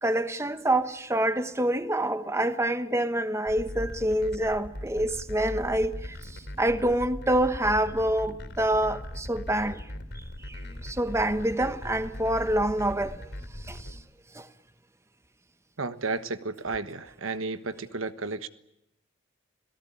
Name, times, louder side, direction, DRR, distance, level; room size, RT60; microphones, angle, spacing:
voice 1, 0.0-9.9 10.4-13.3 13.6-14.0 14.3-14.5, right 1 dB, 15° right, 1.1 m, -27 dB
sound 1, 3.5-13.9, left 1 dB, 55° left, 3.9 m, -39 dB
voice 2, 15.8-18.5, right 3 dB, 90° right, 1.4 m, -32 dB
27.5 x 18.0 x 10.0 m
head